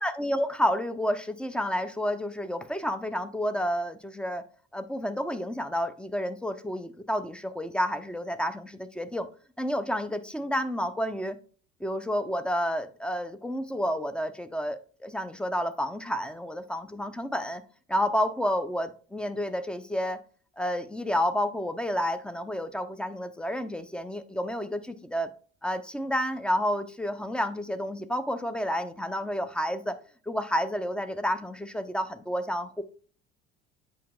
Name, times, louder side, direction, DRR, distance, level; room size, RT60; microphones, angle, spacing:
voice 1, 0.0-4.4 4.7-9.3 9.6-11.4 11.8-17.6 17.9-20.2 20.6-25.3 25.6-30.0 30.3-32.8, equal, 5° left, 0.5 m, -30 dB
8.3 x 5.2 x 2.3 m
figure-of-eight pair, 55°, 35 cm